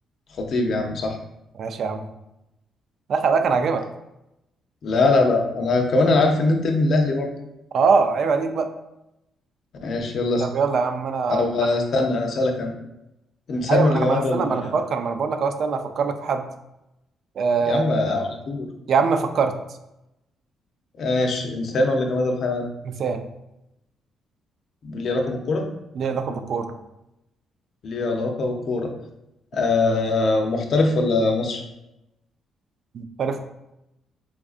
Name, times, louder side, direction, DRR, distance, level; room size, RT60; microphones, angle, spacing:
voice 1, 0.4-1.2 4.8-7.3 9.8-10.5 11.3-12.7 13.5-14.7 17.7-18.7 21.0-22.7 24.8-25.7 27.8-28.9 29.5-31.6, left 2 dB, 60° left, 3 dB, 0.5 m, -22 dB
voice 2, 1.6-2.0 3.1-3.8 7.7-8.7 10.4-11.5 13.7-16.5 17.4-17.8 18.9-19.5 22.9-23.2 26.0-26.7 32.9-33.4, right 5 dB, 60° right, 7 dB, 0.3 m, -23 dB
3.5 x 2.4 x 2.4 m, 0.89 s
cardioid pair, 90°, 0 cm